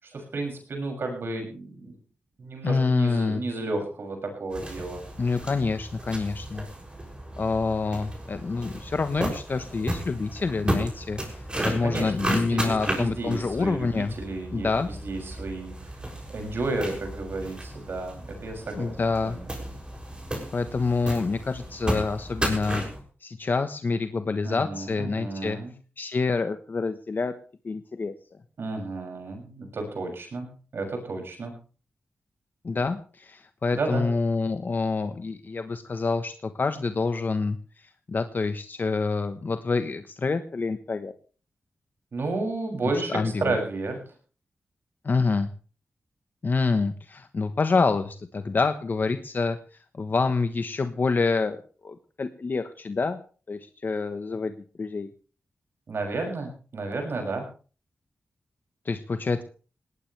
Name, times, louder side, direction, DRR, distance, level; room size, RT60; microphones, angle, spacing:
voice 1, 0.0-1.9 2.4-5.0 11.6-16.0 16.3-19.0 19.2-19.5 24.4-25.7 28.6-31.5 33.7-34.1 42.1-44.0 55.9-57.5, right 2 dB, 70° right, 3 dB, 7.0 m, -32 dB
voice 2, 2.6-3.4 5.2-6.7 7.4-14.1 14.5-14.9 18.7-19.4 20.5-22.8 23.2-25.6 26.0-27.3 27.6-28.1 32.6-37.6 38.1-41.1 43.1-43.5 45.0-45.5 46.4-49.6 49.9-53.2 53.5-55.1 58.8-59.4, left 4 dB, 50° left, 8 dB, 1.2 m, -27 dB
sound 1, 4.5-23.0, right 1 dB, 25° right, 6.7 m, -34 dB
19.5 x 18.5 x 3.4 m, 0.39 s
cardioid pair, 75°, 4 cm